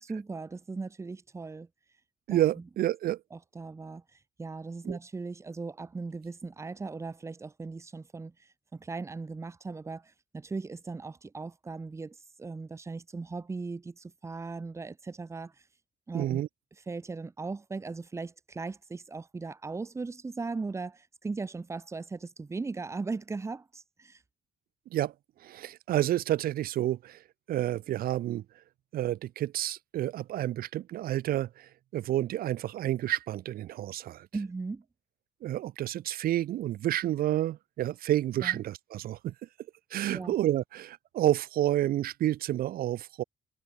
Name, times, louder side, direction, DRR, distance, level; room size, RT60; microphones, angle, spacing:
voice 1, 0.1-1.7 2.3-2.4 3.3-4.0 4.4-15.5 16.1-16.5 16.9-24.2 34.3-34.8 38.4-38.6 40.1-40.3, right 4 dB, 20° right, 0.9 m, -38 dB
voice 2, 2.3-3.2 4.8-5.0 16.1-16.5 24.9-25.1 25.4-27.2 27.5-28.4 28.9-34.3 35.4-39.3 39.9-43.2, right 13 dB, 80° right, 0.8 m, -29 dB
cardioid pair, 130°, 15 cm